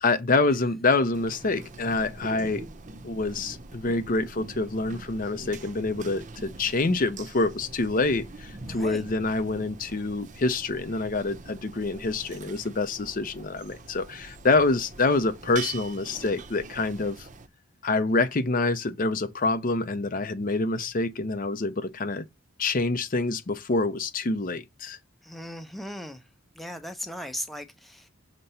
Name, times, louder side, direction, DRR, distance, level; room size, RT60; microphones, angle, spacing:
voice 1, 0.0-2.7 3.0-17.3 17.8-22.2 22.6-25.0, left 3 dB, 40° left, 0.6 m, -26 dB
sound 1, 1.1-17.5, right 3 dB, 35° right, 0.7 m, -43 dB
voice 2, 8.6-9.1 25.2-26.2 26.5-28.1, equal, ahead, 0.7 m, -38 dB
6.5 x 3.0 x 5.5 m
head